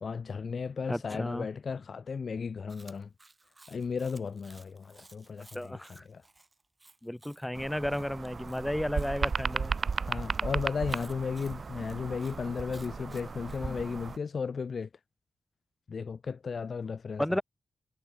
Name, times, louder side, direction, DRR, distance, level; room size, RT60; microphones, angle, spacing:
voice 1, 0.0-3.1 3.7-6.2 10.1-14.9 15.9-17.4, left 5 dB, 60° left, 0.3 m, -35 dB
voice 2, 0.9-1.5 5.5-6.0 7.0-9.7 17.2-17.4, left 1 dB, 5° left, 1.2 m, -33 dB
Chewing mastication, 2.7-9.1 10.9-13.6, right 2 dB, 25° right, 1.9 m, -57 dB
sound 1, 7.5-14.2, right 5 dB, 50° right, 0.5 m, -35 dB
wide cardioid pair, 95°, 0 cm